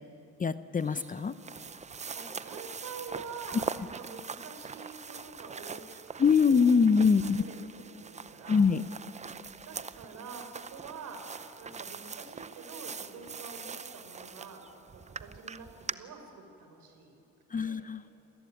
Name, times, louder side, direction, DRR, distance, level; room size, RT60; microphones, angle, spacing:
voice 1, 0.4-1.3 6.2-7.4 8.5-8.8 17.5-18.0, left 5 dB, 25° left, 13 dB, 0.7 m, -23 dB
sound 1, 0.8-15.9, right 5 dB, 20° right, 0.6 m, -42 dB
voice 2, 1.9-6.9 7.2-8.6 9.7-11.3 11.6-14.6 14.9-17.1 17.5-17.8, right 5 dB, 70° right, 5 dB, 4.4 m, -47 dB
27.5 x 15.5 x 9.5 m, 2.7 s
cardioid pair, 90°, 31 cm